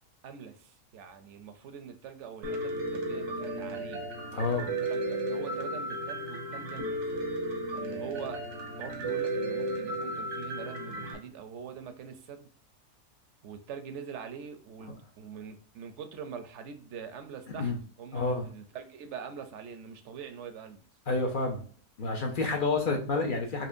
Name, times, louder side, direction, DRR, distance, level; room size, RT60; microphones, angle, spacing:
voice 1, 0.2-4.1 4.6-7.0 7.7-8.4 8.8-12.5 13.4-17.7 18.0-20.8, right 7 dB, 65° right, 8 dB, 0.8 m, -44 dB
Piano, 2.4-11.1, right 1 dB, 90° right, 1.4 m, -34 dB
voice 2, 4.3-4.6 17.6-17.8 18.1-18.4 21.1-21.6 22.0-23.7, left 3 dB, 55° left, 2 dB, 0.5 m, -29 dB
4.3 x 2.8 x 2.5 m, 0.43 s
omnidirectional pair, 1.6 m